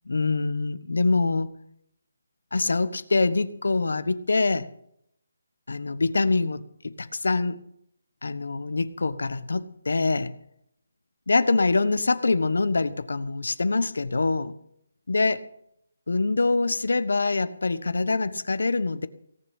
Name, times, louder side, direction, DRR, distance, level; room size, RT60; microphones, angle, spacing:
voice 1, 0.1-1.5 2.5-4.7 5.7-7.6 8.2-10.3 11.3-14.5 15.1-15.4 16.1-19.1, left 3 dB, 85° left, 14 dB, 1.2 m, -24 dB
17.5 x 6.9 x 8.7 m, 0.72 s
hypercardioid pair, 180°, 0 cm